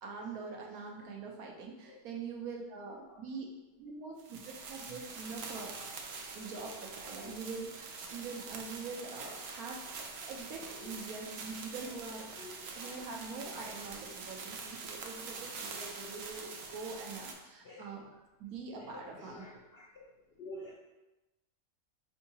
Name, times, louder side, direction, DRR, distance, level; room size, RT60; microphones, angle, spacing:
voice 1, 0.0-3.5 3.8-5.8 6.3-18.1 18.4-19.4, right 4 dB, 85° right, 0 dB, 1.2 m, -44 dB
sound 1, 4.2-17.3, right 4 dB, 65° right, 0.7 m, -45 dB
voice 2, 5.5-5.9 7.0-7.4 9.7-9.8 10.7-11.0 11.8-12.0 12.4-13.1 17.6-17.9 18.7-20.1 20.4-20.7, left 1 dB, 70° left, -3 dB, 0.6 m, -50 dB
4.6 x 3.6 x 2.8 m, 1.0 s
omnidirectional pair, 1.5 m